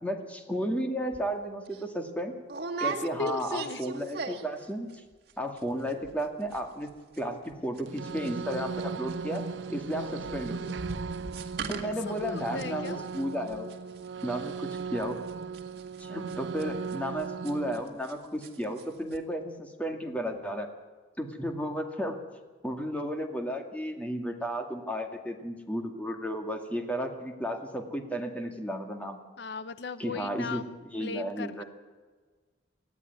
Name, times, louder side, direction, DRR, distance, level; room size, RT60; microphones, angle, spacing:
voice 1, 0.0-2.3 2.8-4.9 5.4-6.9 7.2-9.4 9.7-10.7 11.7-13.7 14.2-15.2 16.0-20.7 21.2-22.2 22.6-29.2 30.0-30.6 30.9-31.6, equal, 10° left, 4 dB, 2.1 m, -33 dB
sound 1, 1.1-1.3 1.7-1.8 2.5-4.6 4.9-5.3 5.6-5.7 5.9-6.2 6.5-18.1 18.4-18.8 19.1-19.2, right 4 dB, 60° right, 2.0 m, -39 dB
voice 2, 2.8-3.8 11.8-13.0 29.4-31.6, left 4 dB, 65° left, 13 dB, 0.7 m, -37 dB
sound 2, 7.9-17.8, right 5 dB, 85° right, 0.6 m, -37 dB
20.0 x 14.0 x 9.5 m, 1.4 s
head